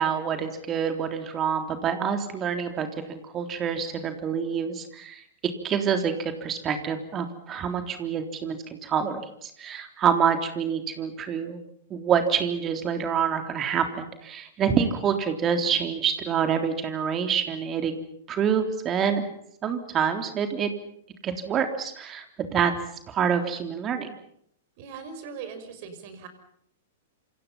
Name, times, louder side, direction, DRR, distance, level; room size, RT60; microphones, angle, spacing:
voice 1, 0.0-5.2 5.6-11.6 11.9-18.0 18.3-19.2 19.6-20.7 21.2-22.2 22.5-22.7 23.1-24.2, right 7 dB, 25° right, 6 dB, 3.5 m, -27 dB
voice 2, 24.8-26.3, right 6 dB, 45° right, 9 dB, 6.1 m, -40 dB
28.0 x 28.0 x 5.8 m, 0.69 s
figure-of-eight pair, 105°, 0 cm